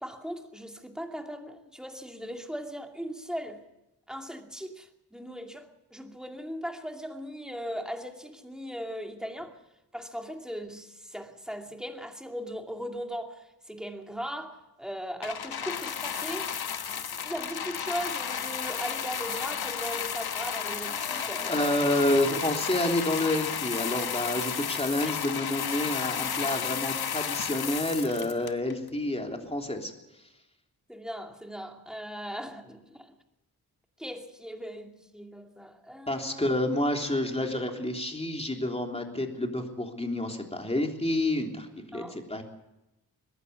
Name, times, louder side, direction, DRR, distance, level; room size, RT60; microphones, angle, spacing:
voice 1, 0.0-3.6 4.1-9.6 9.9-16.6 16.9-21.4 30.9-33.2 34.0-36.5 41.9-42.2, equal, ahead, 2.4 m, -38 dB
sound 1, 15.2-28.9 29.7-29.8, left 8 dB, 75° left, 1.1 m, -33 dB
voice 2, 20.9-29.9 36.1-42.4, left 1 dB, 15° left, 3.4 m, -29 dB
21.0 x 15.5 x 8.2 m
wide cardioid pair, 95°, 38 cm